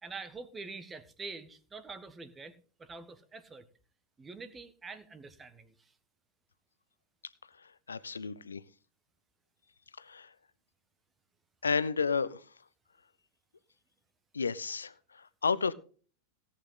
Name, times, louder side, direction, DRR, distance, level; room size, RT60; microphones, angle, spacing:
voice 1, 0.0-3.7 4.2-5.9, right 4 dB, 15° right, 1.4 m, -46 dB
voice 2, 7.9-8.6 10.0-10.3 11.6-12.4 14.3-15.7, left 5 dB, 75° left, 0.8 m, -31 dB
17.5 x 8.6 x 3.9 m
figure-of-eight pair, 90°, 0 cm